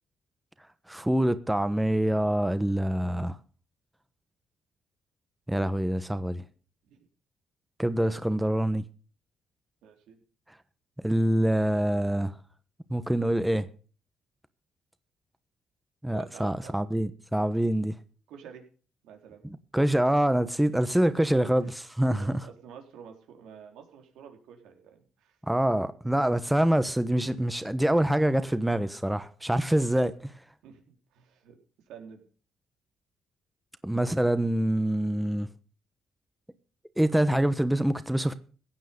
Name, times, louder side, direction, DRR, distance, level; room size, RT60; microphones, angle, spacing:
voice 1, 0.9-3.4 5.5-6.4 7.8-8.8 11.0-12.3 12.9-13.7 16.0-17.9 19.4-22.4 25.5-30.3 33.8-35.5 37.0-38.3, right 1 dB, 5° right, 1.1 m, -25 dB
voice 2, 9.8-10.2 16.1-16.8 18.3-18.6 19.0-19.4 21.1-21.8 22.2-25.4 30.6-31.6 31.9-32.2, right 7 dB, 90° right, 3.8 m, -49 dB
16.0 x 9.3 x 5.3 m
cardioid pair, 90°, 0 cm